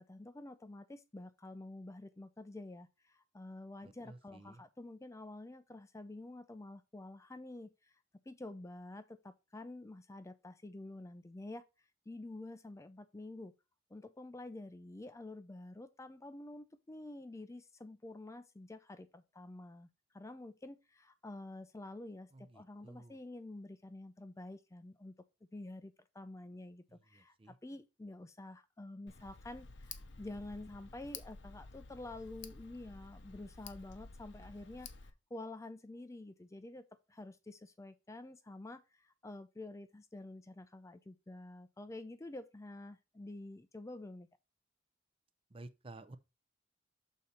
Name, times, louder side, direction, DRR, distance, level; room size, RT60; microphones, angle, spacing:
voice 1, 0.0-7.9 8.3-11.6 12.1-13.5 13.9-19.9 20.1-25.1 25.5-34.9 35.3-44.3, left 2 dB, 15° left, 0.4 m, -49 dB
voice 2, 3.8-4.6 22.5-23.2 27.2-27.5 45.5-46.2, right 2 dB, 30° right, 0.6 m, -53 dB
Tick, 29.1-35.1, left 5 dB, 65° left, 0.8 m, -52 dB
6.6 x 4.1 x 5.5 m
head